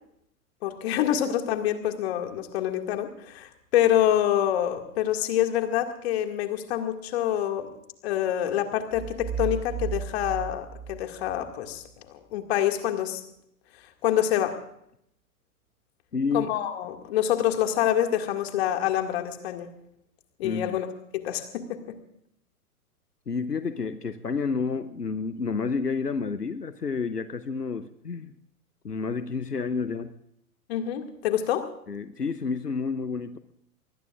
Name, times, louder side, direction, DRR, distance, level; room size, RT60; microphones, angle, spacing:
voice 1, 0.6-7.7 8.0-13.2 14.0-14.6 16.3-19.7 20.4-20.9 21.1-22.0 30.7-31.7, left 11 dB, 40° left, 6 dB, 2.2 m, -26 dB
sound 1, 8.9-11.8, right 7 dB, 25° right, 5.5 m, -34 dB
voice 2, 16.1-16.5 20.4-20.8 23.3-28.3 28.8-30.1 31.9-33.4, left 5 dB, 85° left, 13 dB, 0.9 m, -30 dB
24.5 x 20.0 x 2.5 m, 0.72 s
figure-of-eight pair, 110°, 46 cm